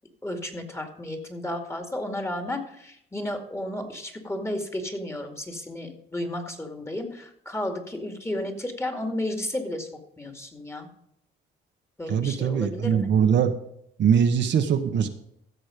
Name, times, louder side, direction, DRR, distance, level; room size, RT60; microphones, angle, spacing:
voice 1, 0.2-9.9 10.2-10.9 12.0-13.1, left 1 dB, 15° left, 5 dB, 2.2 m, -33 dB
voice 2, 12.1-13.5 14.0-15.1, right 8 dB, 65° right, 6 dB, 1.2 m, -22 dB
15.5 x 6.4 x 5.1 m, 0.73 s
cardioid pair, 90°, 20 cm